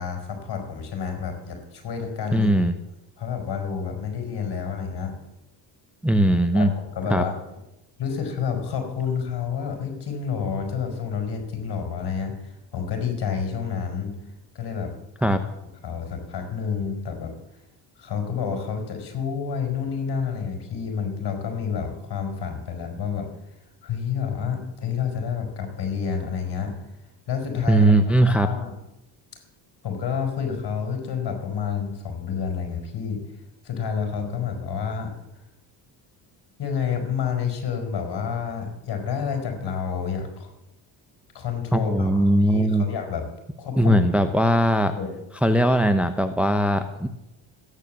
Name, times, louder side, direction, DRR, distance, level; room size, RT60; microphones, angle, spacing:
voice 1, 0.0-2.5 3.2-5.2 6.5-7.4 8.0-14.1 14.5-14.9 15.2-15.3 15.8-17.3 18.0-23.3 23.8-26.7 27.3-27.9 28.2-28.7 29.8-33.2 33.6-35.4 36.6-40.5 41.3-43.3 43.6-44.1 44.9-45.1, left 6 dB, 55° left, 5 dB, 4.7 m, -29 dB
voice 2, 2.3-2.8 6.0-6.7 7.1-7.2 15.2-15.4 27.7-28.5 41.7-42.9 43.8-44.9 45.4-47.1, right 1 dB, 5° right, 8 dB, 0.9 m, -19 dB
13.5 x 9.8 x 7.5 m, 0.91 s
cardioid pair, 90°, 46 cm